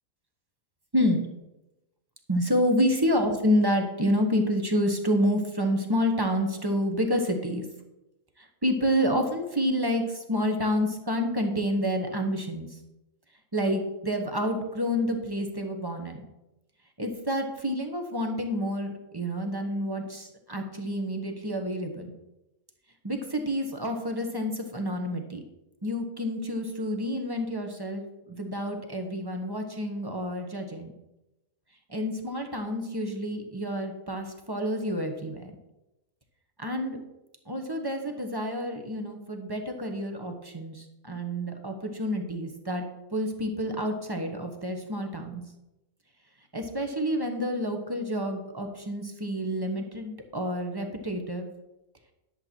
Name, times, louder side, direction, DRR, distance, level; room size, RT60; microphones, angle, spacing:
voice 1, 0.9-1.3 2.3-7.6 8.4-12.8 13.5-16.2 17.0-22.1 23.0-25.4 25.8-30.9 31.9-35.5 36.6-37.0 37.5-42.9 43.1-45.4 46.5-51.5, equal, 20° right, 4 dB, 1.0 m, -28 dB
11.0 x 7.6 x 4.5 m, 0.95 s
omnidirectional pair, 1.5 m